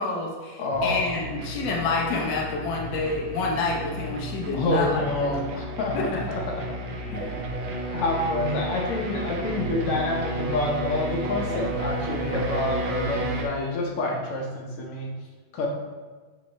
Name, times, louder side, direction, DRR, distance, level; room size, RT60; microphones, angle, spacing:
voice 1, 0.0-5.4 5.9-6.2 7.1-7.3, left 3 dB, 85° left, -2 dB, 1.0 m, -28 dB
voice 2, 0.6-1.2 4.5-6.7 7.9-15.1 15.5-15.7, left 2 dB, 70° left, -1 dB, 1.4 m, -28 dB
sound 1, 0.7-13.4, right 1 dB, 70° right, 1.3 m, -32 dB
8.3 x 3.2 x 4.3 m, 1.4 s
omnidirectional pair, 3.4 m